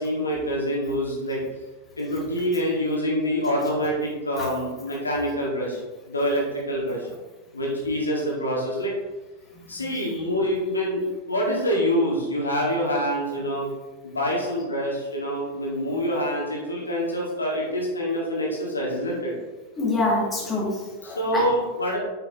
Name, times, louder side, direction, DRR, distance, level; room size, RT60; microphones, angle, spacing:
voice 1, 0.0-1.4 2.0-5.8 6.1-7.0 7.5-8.9 9.7-11.0 11.3-13.7 14.0-19.3 21.0-22.0, equal, 75° left, -3 dB, 1.8 m, -26 dB
voice 2, 19.8-21.5 21.8-21.9, left 2 dB, 15° left, -4 dB, 2.1 m, -26 dB
8.3 x 6.7 x 2.9 m, 1.2 s
figure-of-eight pair, 90°, 0 cm